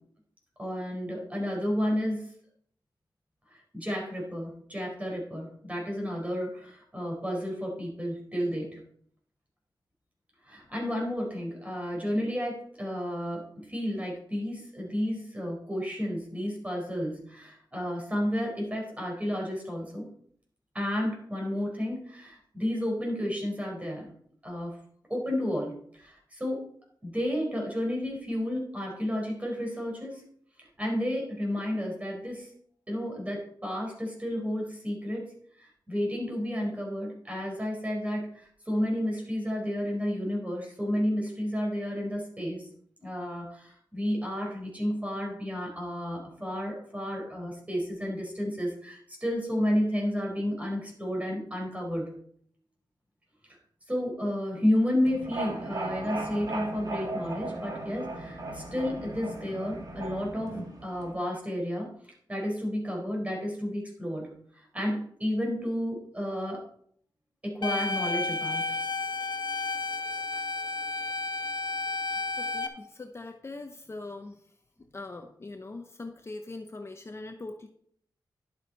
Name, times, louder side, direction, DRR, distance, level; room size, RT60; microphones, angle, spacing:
voice 1, 0.6-2.3 3.5-8.8 10.4-20.1 20.7-24.1 24.4-24.8 25.1-26.6 27.0-30.2 30.6-32.5 32.9-42.7 43.0-52.1 53.9-66.7 67.4-68.6, equal, 15° right, -1 dB, 4.5 m, -32 dB
sound 1, 55.0-61.1, right 2 dB, 55° right, 2.3 m, -37 dB
sound 2, 67.6-72.7, left 3 dB, 80° left, 1.1 m, -32 dB
voice 2, 72.4-74.4 74.9-77.7, left 2 dB, 35° left, 5 dB, 0.8 m, -41 dB
11.5 x 7.9 x 4.1 m, 0.62 s
wide cardioid pair, 100°, 8 cm